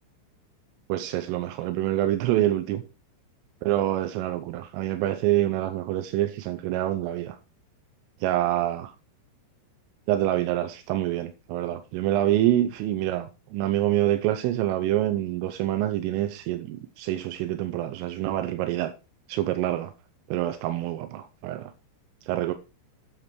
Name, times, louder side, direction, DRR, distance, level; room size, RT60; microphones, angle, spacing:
voice 1, 0.9-2.8 3.6-7.4 8.2-8.9 10.1-18.9 19.3-19.9 20.3-21.7 22.3-22.5, right 13 dB, 85° right, 3.4 m, -26 dB
10.0 x 7.6 x 4.4 m
omnidirectional pair, 5.7 m